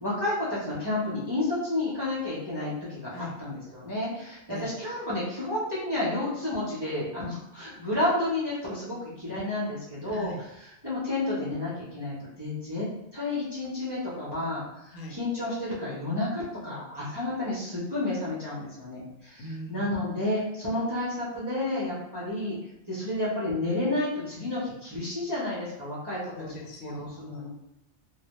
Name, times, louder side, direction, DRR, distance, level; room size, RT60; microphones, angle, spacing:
voice 1, 0.0-10.3 10.8-12.9 13.1-22.6 22.9-26.3 26.8-27.5, left 2 dB, 30° right, -9 dB, 0.5 m, -31 dB
voice 2, 10.0-10.4 14.9-15.2 19.4-20.0 26.4-27.5, equal, 90° left, 0 dB, 0.9 m, -40 dB
2.2 x 2.0 x 2.8 m, 0.88 s
omnidirectional pair, 1.2 m